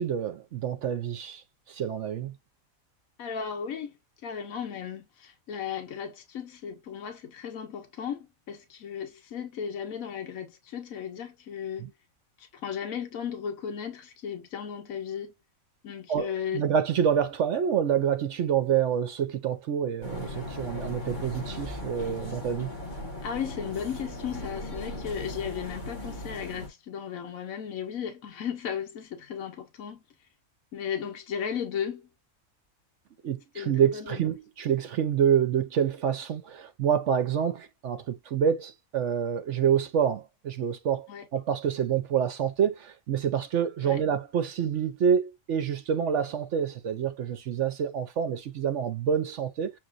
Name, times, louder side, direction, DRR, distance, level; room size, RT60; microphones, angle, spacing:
voice 1, 0.0-2.3 11.8-11.9 16.1-22.7 33.2-49.7, right 8 dB, 65° right, 0.9 m, -27 dB
voice 2, 3.2-4.0 4.2-11.9 12.4-15.3 15.8-16.6 23.2-30.0 30.7-32.1 33.5-34.3 41.1-41.3 43.8-44.0, left 8 dB, 75° left, 1.3 m, -35 dB
sound 1, 20.0-26.7, left 1 dB, 35° left, 1.6 m, -38 dB
7.3 x 2.9 x 2.4 m
omnidirectional pair, 1.4 m